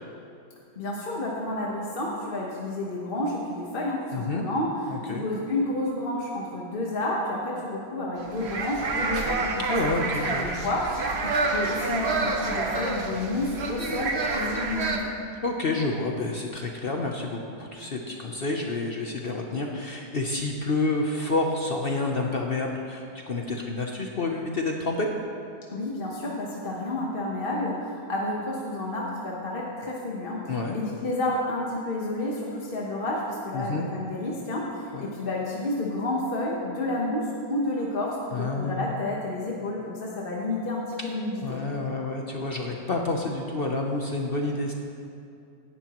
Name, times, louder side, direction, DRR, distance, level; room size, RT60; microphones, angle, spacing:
voice 1, 0.7-15.1 25.7-41.6, left 1 dB, 35° left, -3 dB, 1.1 m, -30 dB
voice 2, 4.1-4.4 4.9-5.3 9.7-10.5 15.4-25.1 30.5-30.8 33.5-33.8 34.9-35.1 38.3-38.9 41.4-44.7, left 2 dB, 60° left, 1 dB, 0.6 m, -29 dB
sound 1, 8.2-15.0, right 3 dB, 45° right, 0.9 m, -28 dB
17.0 x 11.0 x 3.0 m, 2.5 s
omnidirectional pair, 2.1 m